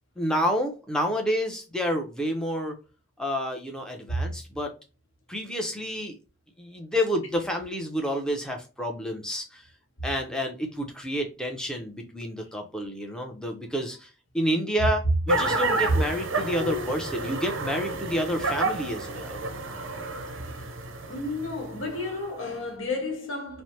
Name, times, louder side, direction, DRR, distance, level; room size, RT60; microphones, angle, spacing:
voice 1, 0.2-2.8 3.2-4.7 5.3-6.1 6.6-9.6 10.0-14.1 14.3-15.0 15.3-19.4, equal, 5° left, 0.5 m, -29 dB
sound 1, 15.3-22.3, right 2 dB, 80° right, 0.6 m, -30 dB
voice 2, 21.1-23.6, left 1 dB, 75° left, 1.1 m, -30 dB
3.2 x 2.0 x 2.7 m
head